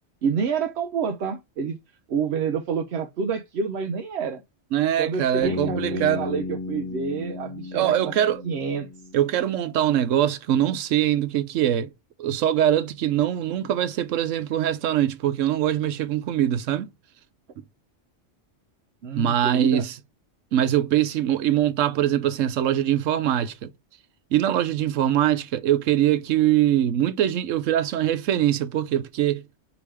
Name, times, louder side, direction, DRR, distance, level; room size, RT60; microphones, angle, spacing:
voice 1, 0.2-1.8 2.1-4.4 5.0-8.9 19.0-19.9, right 6 dB, 65° right, 0.8 m, -28 dB
voice 2, 4.7-6.2 7.7-8.4 9.1-11.9 12.2-16.9 19.1-19.9 20.5-23.7 24.3-29.4, right 11 dB, 90° right, 1.0 m, -23 dB
Bass guitar, 5.4-9.5, left 3 dB, 10° left, 1.4 m, -34 dB
4.9 x 3.0 x 3.0 m
omnidirectional pair, 1.3 m